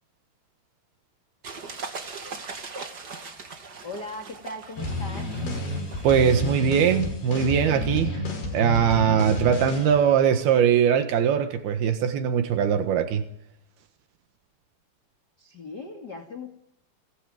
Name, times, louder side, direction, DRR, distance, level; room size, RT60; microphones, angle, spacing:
sound 1, 1.4-6.6, right 4 dB, 30° right, 2.2 m, -40 dB
voice 1, 3.8-5.3 15.4-16.5, left 2 dB, 30° left, 2.5 m, -38 dB
sound 2, 4.8-9.9, left 2 dB, 90° left, 7.7 m, -30 dB
voice 2, 6.0-8.2 8.5-13.2, right 8 dB, 80° right, 3.3 m, -21 dB
28.5 x 19.0 x 9.2 m
omnidirectional pair, 4.4 m